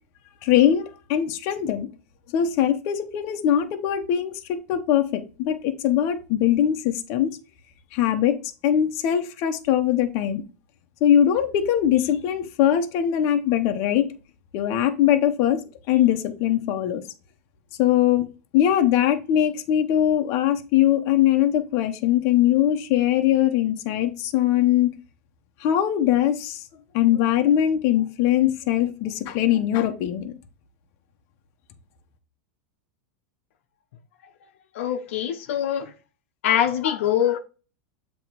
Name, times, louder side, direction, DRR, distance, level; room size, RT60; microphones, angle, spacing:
voice 1, 0.4-1.9 2.3-7.4 7.9-8.4 8.6-10.4 11.0-14.1 14.5-15.6 15.9-17.0 17.8-25.0 25.6-26.6 26.9-30.3, left 11 dB, 45° left, 1.0 m, -21 dB
voice 2, 34.7-35.9 36.4-37.4, left 10 dB, 75° left, 1.0 m, -23 dB
7.7 x 3.1 x 4.7 m
supercardioid pair, 150°, 7 cm